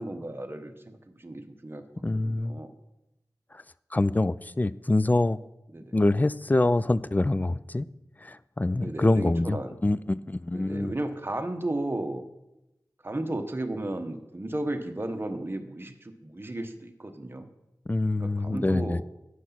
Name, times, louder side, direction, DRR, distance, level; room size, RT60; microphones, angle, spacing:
voice 1, 0.0-1.8 2.2-2.7 5.7-6.0 8.8-9.8 10.5-12.2 13.0-17.5 18.2-19.0, right 1 dB, 30° right, 6 dB, 1.0 m, -34 dB
voice 2, 2.0-2.6 3.5-3.6 3.9-5.4 5.9-7.9 8.2-10.9 17.9-19.0, left 2 dB, 25° left, 16 dB, 0.3 m, -25 dB
9.4 x 6.3 x 5.9 m, 0.90 s
wide cardioid pair, 55°, 7 cm